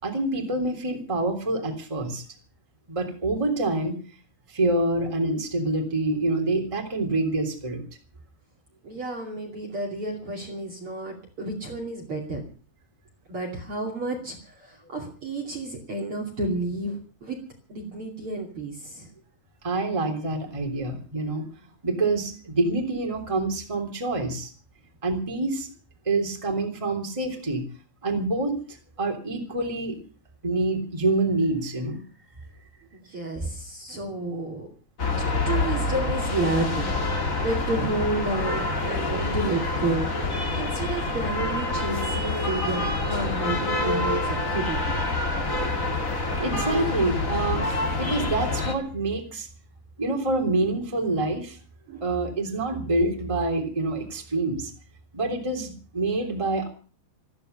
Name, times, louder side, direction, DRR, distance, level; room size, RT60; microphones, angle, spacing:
voice 1, 0.0-2.2 2.9-3.9 4.5-7.8 19.6-21.4 21.8-24.5 25.0-25.7 26.0-27.6 28.0-28.6 29.0-30.0 30.4-32.0 46.4-47.7 47.9-49.5 50.0-51.6 52.0-54.7 55.1-56.7, right 2 dB, 10° right, 3 dB, 2.9 m, -26 dB
voice 2, 8.8-12.4 13.3-17.4 17.7-19.1 32.9-34.7 35.4-45.0 51.9-52.1 52.3-52.4, right 2 dB, 40° right, 2 dB, 3.1 m, -31 dB
sound 1, 35.0-48.7, left 2 dB, 25° left, 2.2 m, -27 dB
14.5 x 14.0 x 6.8 m, 0.40 s
omnidirectional pair, 4.4 m